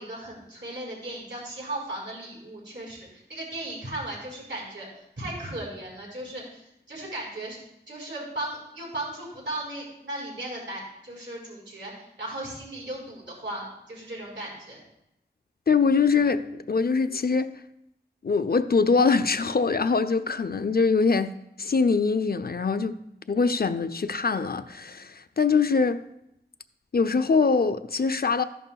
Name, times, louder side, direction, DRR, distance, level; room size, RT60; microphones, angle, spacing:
voice 1, 0.0-7.6 7.9-14.8, right 1 dB, 90° right, 4.5 m, -36 dB
voice 2, 15.7-17.5 18.2-23.0 23.3-26.0 26.9-28.4, left 4 dB, 60° left, 0.5 m, -23 dB
14.0 x 11.0 x 2.3 m
wide cardioid pair, 55°, 18 cm